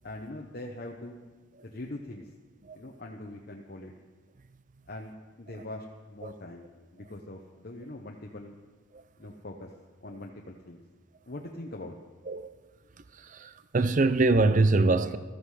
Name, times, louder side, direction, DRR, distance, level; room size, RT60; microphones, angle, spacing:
voice 1, 0.0-1.2 1.6-2.3 2.7-3.9 4.9-8.6 9.2-9.7 10.0-10.8 11.3-12.0, left 1 dB, 45° left, 0.9 m, -42 dB
voice 2, 13.1-15.2, right 3 dB, 35° right, 0.5 m, -25 dB
15.0 x 13.5 x 4.9 m
head